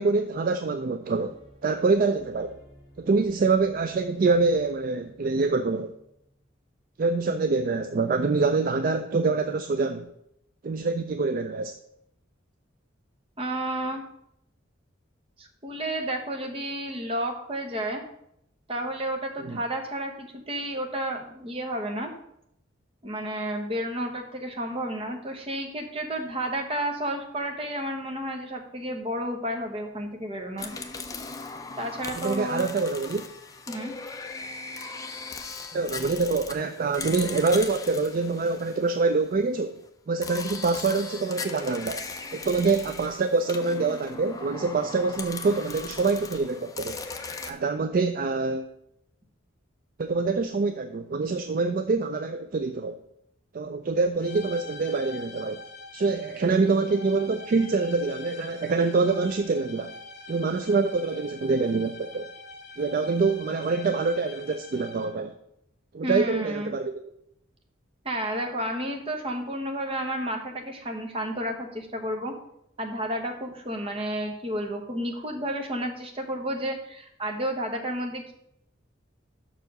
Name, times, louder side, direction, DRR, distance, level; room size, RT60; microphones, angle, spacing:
voice 1, 0.0-1.4 1.6-2.6 3.0-5.9 7.0-10.1 10.6-11.7 19.4-19.6 32.2-33.3 35.7-39.8 40.1-42.0 42.3-47.0 47.5-48.7 50.0-53.0 53.5-55.6 55.9-59.9 60.3-62.3 62.8-65.3 65.9-67.0, right 4 dB, 45° right, 9 dB, 0.3 m, -25 dB
sound 1, 1.3-6.6, equal, ahead, 2.7 m, -54 dB
voice 2, 13.4-14.0 15.4-18.0 18.7-22.1 23.0-30.7 31.8-32.7 33.7-33.9 66.0-66.7 68.0-72.3 72.8-78.3, right 1 dB, 30° right, 3 dB, 1.0 m, -31 dB
sound 2, 30.6-39.4 40.2-47.5, left 4 dB, 15° left, 0.5 m, -38 dB
sound 3, 54.2-65.3, left 3 dB, 55° left, 1.1 m, -44 dB
6.1 x 4.6 x 6.5 m, 0.77 s
head